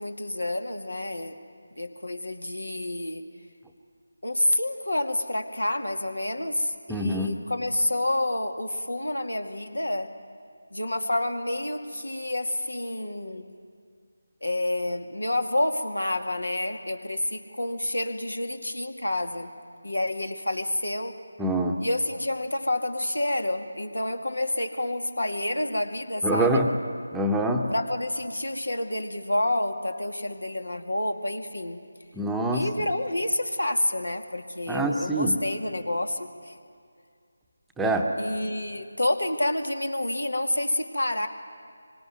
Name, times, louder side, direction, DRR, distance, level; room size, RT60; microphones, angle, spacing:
voice 1, 0.0-1.4 1.8-3.2 4.2-10.1 10.7-13.5 14.4-19.5 19.8-21.2 21.8-26.6 27.7-31.8 32.5-36.5 38.2-41.3, left 1 dB, 80° left, 6 dB, 2.4 m, -28 dB
voice 2, 6.9-7.4 21.4-21.8 26.2-26.7 27.1-27.7 32.2-32.7 34.7-35.4 37.8-38.1, right 1 dB, 5° right, 1 dB, 1.1 m, -25 dB
25.5 x 24.0 x 9.5 m, 2.2 s
figure-of-eight pair, 160°, 0 cm